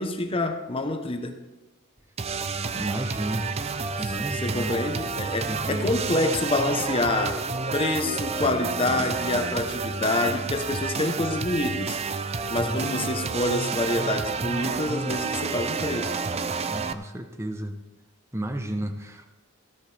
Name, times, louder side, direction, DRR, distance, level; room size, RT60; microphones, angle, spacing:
voice 1, 0.0-1.4 4.0-7.5 7.7-12.0 12.5-16.1, left 2 dB, 25° left, 0.9 m, -27 dB
sound 1, 2.2-16.9, right 4 dB, 30° right, 0.4 m, -30 dB
voice 2, 2.7-3.5 4.0-4.7 5.5-6.0 12.6-12.8 16.7-17.8 18.3-19.3, right 1 dB, 10° right, 0.8 m, -32 dB
17.0 x 11.0 x 3.4 m
head